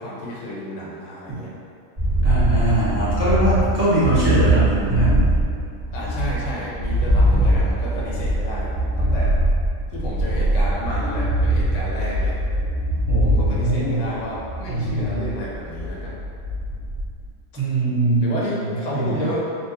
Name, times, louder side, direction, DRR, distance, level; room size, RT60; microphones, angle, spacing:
voice 1, 0.0-1.5 5.9-9.3 9.9-12.4 13.2-16.2 18.2-19.4, left 1 dB, 75° left, -5 dB, 1.0 m, -31 dB
sound 1, 2.0-17.2, right 1 dB, 40° right, 1.6 m, -22 dB
voice 2, 2.2-5.2 13.1-14.0 14.7-15.3 17.5-19.2, right 2 dB, 10° right, -13 dB, 1.3 m, -22 dB
3.9 x 2.5 x 2.7 m, 2.4 s
omnidirectional pair, 1.3 m